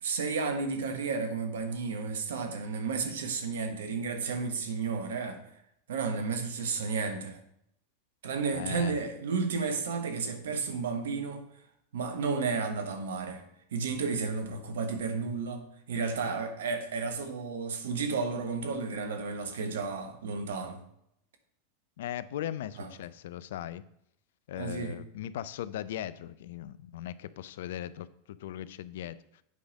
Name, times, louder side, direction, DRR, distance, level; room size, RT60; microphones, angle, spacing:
voice 1, 0.0-5.4 5.9-7.4 8.2-11.4 11.9-13.4 13.7-20.8 22.8-22.9 24.6-25.0, right 4 dB, 75° right, 1.2 m, -32 dB
voice 2, 8.5-9.0 22.0-23.9 24.5-29.4, left 11 dB, 70° left, 0.4 m, -38 dB
8.4 x 5.0 x 5.2 m
hypercardioid pair, 95°, 0 cm